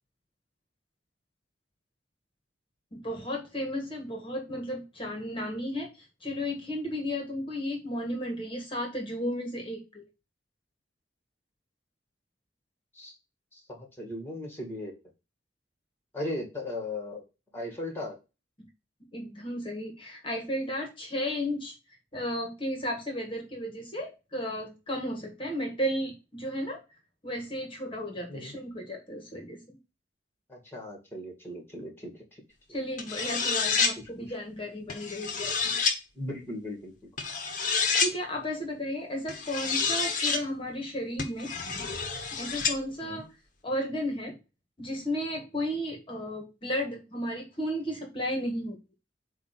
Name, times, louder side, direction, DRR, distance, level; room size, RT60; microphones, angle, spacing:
voice 1, 2.9-10.0 18.6-18.7 19.1-21.7 22.1-26.8 27.2-29.8 32.7-35.8 38.0-41.5 42.4-43.3 43.6-44.4 44.8-48.8, equal, 30° left, 2 dB, 1.7 m, -34 dB
voice 2, 13.5-14.9 16.1-17.2 17.5-18.2 28.3-28.5 30.5-32.4 34.2-34.3 36.1-36.9 43.0-43.2, left 1 dB, 10° left, 1 dB, 2.3 m, -37 dB
sound 1, 33.0-33.9 34.9-36.0 37.2-38.1 39.3-40.4 41.2-42.8, left 5 dB, 45° left, 1.2 m, -28 dB
8.2 x 2.8 x 5.9 m, 0.28 s
head